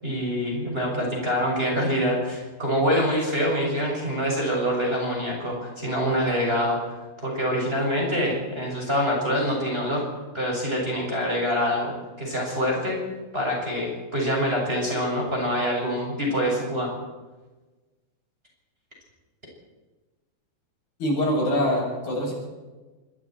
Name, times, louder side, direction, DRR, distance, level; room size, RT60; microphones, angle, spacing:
voice 1, 0.0-6.8 7.2-10.0 10.3-13.0 13.3-16.9, equal, 15° right, -2 dB, 6.6 m, -25 dB
voice 2, 21.0-22.3, equal, 65° left, -3 dB, 9.9 m, -24 dB
25.5 x 24.0 x 4.5 m, 1.2 s
omnidirectional pair, 4.6 m